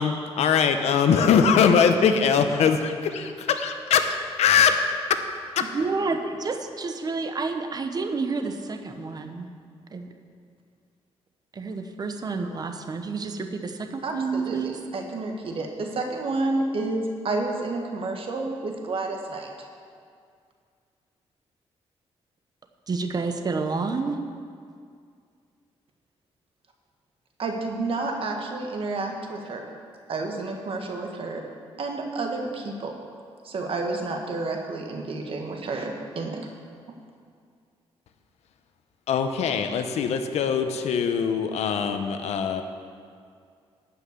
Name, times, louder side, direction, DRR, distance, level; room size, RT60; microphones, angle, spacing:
voice 1, 0.0-4.8 5.6-5.7 39.1-42.6, left 6 dB, 85° left, 7 dB, 0.8 m, -22 dB
voice 2, 5.6-9.5 9.9-10.1 11.5-14.8 22.9-24.2, right 4 dB, 40° right, 6 dB, 0.9 m, -29 dB
voice 3, 14.0-19.5 27.4-29.6 30.1-31.4 31.8-32.9 33.4-36.4, right 3 dB, 60° right, 2 dB, 1.6 m, -30 dB
12.5 x 5.7 x 8.3 m, 2.2 s
cardioid pair, 110°, 11 cm